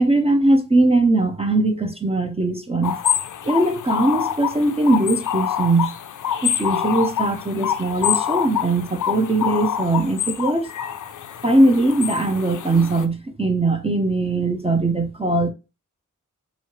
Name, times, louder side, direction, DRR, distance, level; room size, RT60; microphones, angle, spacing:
voice 1, 0.0-2.9 3.4-5.9 6.4-10.7 11.4-15.5, right 2 dB, 20° right, 0.5 m, -20 dB
sound 1, 2.8-13.0, left 9 dB, 70° left, 0.4 m, -26 dB
3.8 x 3.1 x 2.8 m
cardioid pair, 45°, 32 cm